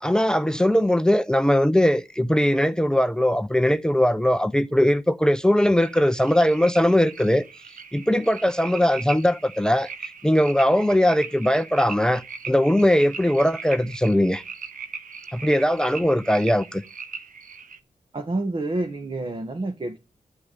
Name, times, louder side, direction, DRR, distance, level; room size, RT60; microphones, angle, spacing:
voice 1, 0.0-7.4 7.9-9.9 10.2-14.4 15.3-16.8, left 1 dB, 5° left, 0.7 m, -20 dB
sound 1, 5.8-17.8, right 5 dB, 80° right, 1.3 m, -39 dB
voice 2, 18.1-20.0, right 2 dB, 40° right, 1.7 m, -28 dB
11.0 x 8.5 x 9.9 m
wide cardioid pair, 105°, 14 cm